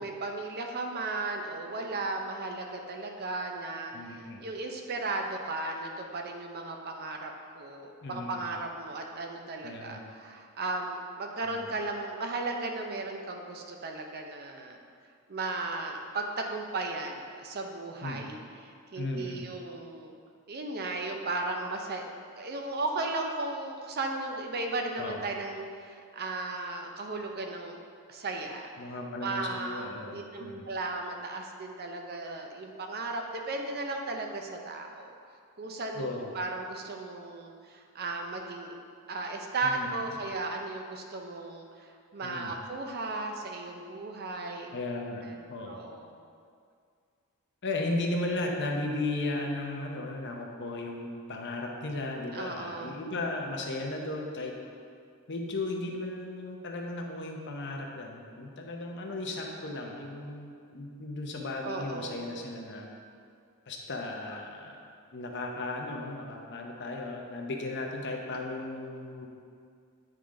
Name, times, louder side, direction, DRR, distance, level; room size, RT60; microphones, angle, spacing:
voice 1, 0.0-14.8 15.3-20.1 20.5-22.1 22.4-27.8 28.1-28.7 29.2-35.1 35.6-38.7 39.1-44.7 45.2-45.4 45.7-46.1 52.3-53.0 61.6-62.3, right 2 dB, 45° right, 3 dB, 0.6 m, -36 dB
voice 2, 3.9-4.4 8.0-8.5 9.6-10.0 11.5-11.7 18.0-18.2 19.0-19.4 25.0-25.2 28.8-30.7 35.9-36.3 39.6-40.0 42.2-42.5 44.7-45.2 45.5-45.8 47.6-54.5 55.3-62.9 63.7-64.8 65.1-69.3, left 2 dB, 50° left, 1 dB, 0.7 m, -35 dB
9.1 x 3.6 x 3.7 m, 2.2 s
head